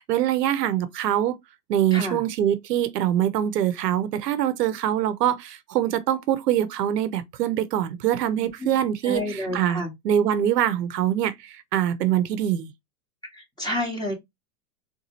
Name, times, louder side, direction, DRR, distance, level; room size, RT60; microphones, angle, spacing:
voice 1, 0.1-1.4 1.7-12.7, right 11 dB, 85° right, 0.7 m, -24 dB
voice 2, 1.9-2.2 8.4-8.7 9.0-9.9 13.3-14.1, left 1 dB, 10° left, 1.7 m, -30 dB
4.0 x 2.4 x 2.7 m
hypercardioid pair, 120°, 47 cm